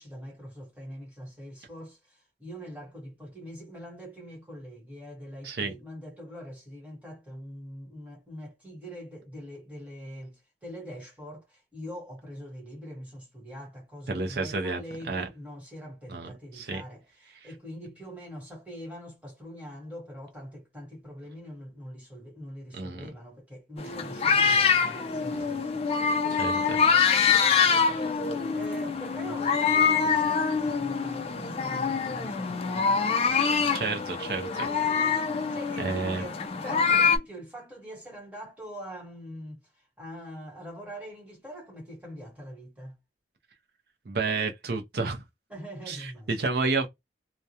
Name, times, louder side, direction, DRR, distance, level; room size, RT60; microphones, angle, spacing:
voice 1, 0.0-25.7 26.2-28.2 28.5-33.0 35.5-39.6 40.0-43.0 45.5-46.3, equal, 10° right, 1.2 m, -43 dB
voice 2, 14.1-14.8 15.1-15.3 16.1-16.8 17.3-17.5 22.7-23.1 25.3-25.5 26.4-26.8 33.5-34.7 35.8-36.2 44.1-45.2 45.9-46.9, right 3 dB, 60° right, 0.5 m, -31 dB
sound 1, 23.8-37.2, left 5 dB, 35° left, 0.3 m, -25 dB
2.3 x 2.1 x 2.7 m
head